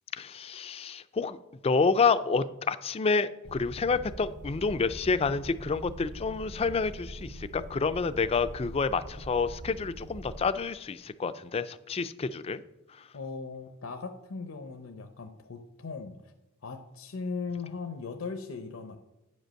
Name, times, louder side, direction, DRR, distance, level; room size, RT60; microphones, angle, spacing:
voice 1, 0.1-1.4 1.6-12.6 12.9-13.1, left 4 dB, 25° left, 13 dB, 0.3 m, -28 dB
sound 1, 3.4-10.5, right 1 dB, 35° right, 0.6 m, -43 dB
voice 2, 13.1-16.3 16.6-19.0, left 4 dB, 70° left, 6 dB, 0.6 m, -38 dB
9.3 x 5.2 x 6.3 m, 0.98 s
head